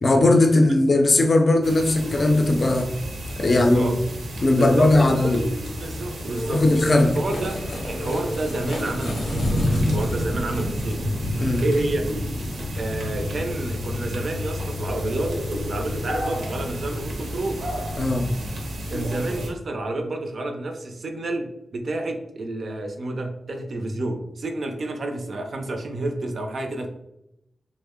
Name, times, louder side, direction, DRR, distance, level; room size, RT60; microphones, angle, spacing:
voice 1, 0.0-2.9 3.4-3.9 4.4-5.4 6.5-7.2 11.4-11.6 18.0-18.3, left 2 dB, 35° left, 4 dB, 0.5 m, -18 dB
sound 1, 1.6-19.5, equal, 90° right, 0.7 m, -30 dB
voice 2, 3.4-4.0 4.6-5.4 5.8-6.6 7.0-7.6 7.9-11.1 11.6-12.1 12.8-15.3 15.7-17.6 18.9-26.9, right 2 dB, 50° right, 5 dB, 0.4 m, -29 dB
sound 2, 5.4-16.8, equal, 90° left, 0.7 m, -36 dB
3.4 x 2.1 x 3.5 m, 0.84 s
wide cardioid pair, 155°, 0 cm